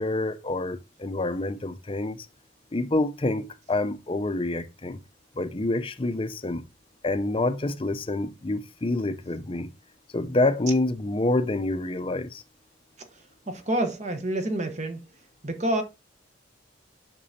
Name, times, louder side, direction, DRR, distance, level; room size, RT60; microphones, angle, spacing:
voice 1, 0.0-2.3 2.7-5.0 5.4-6.6 7.0-9.7 10.1-12.4, left 2 dB, 30° left, 0.6 m, -27 dB
voice 2, 13.5-15.0 15.4-15.8, right 1 dB, 40° right, 1.1 m, -27 dB
8.3 x 6.1 x 2.8 m
head